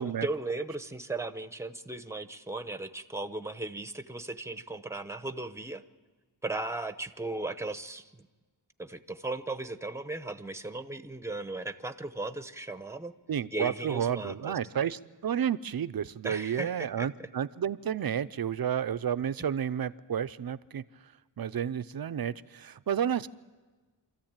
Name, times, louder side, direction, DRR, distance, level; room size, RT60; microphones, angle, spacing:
voice 1, 0.0-5.8 6.4-8.2 8.8-13.1 13.5-14.6 16.2-17.1, right 2 dB, 5° right, 10 dB, 0.8 m, -37 dB
voice 2, 13.3-20.8 21.4-23.3, right 9 dB, 55° right, 13 dB, 0.6 m, -31 dB
26.0 x 14.0 x 8.9 m, 1.3 s
wide cardioid pair, 140°, 45 cm